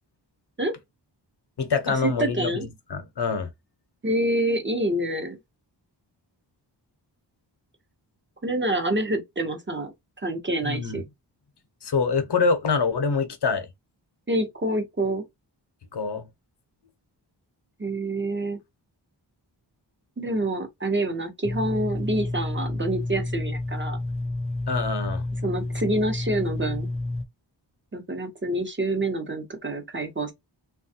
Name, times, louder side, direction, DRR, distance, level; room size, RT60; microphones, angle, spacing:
voice 1, 1.6-3.5 10.6-11.0 11.8-13.7 15.9-16.3 24.7-25.2, left 5 dB, 65° left, 0.8 m, -25 dB
voice 2, 2.2-2.6 4.0-5.4 8.4-9.9 10.2-11.0 14.3-15.2 17.8-18.6 20.2-24.0 25.4-26.9 27.9-30.3, right 1 dB, 25° right, 0.9 m, -27 dB
sound 1, 21.4-27.3, left 2 dB, 15° left, 0.4 m, -30 dB
3.1 x 2.3 x 2.7 m
wide cardioid pair, 85°, 44 cm